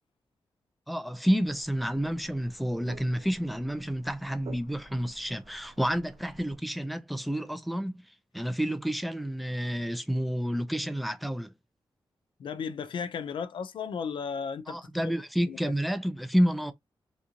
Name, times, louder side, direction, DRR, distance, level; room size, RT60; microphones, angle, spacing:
voice 1, 0.9-8.0 8.3-11.5 14.7-16.7, equal, ahead, 0.4 m, -29 dB
sound 1, 1.5-6.6, right 4 dB, 85° right, 0.9 m, -51 dB
voice 2, 12.4-14.8 15.5-15.6, left 6 dB, 70° left, 0.5 m, -34 dB
3.5 x 2.5 x 2.7 m
wide cardioid pair, 150°, 9 cm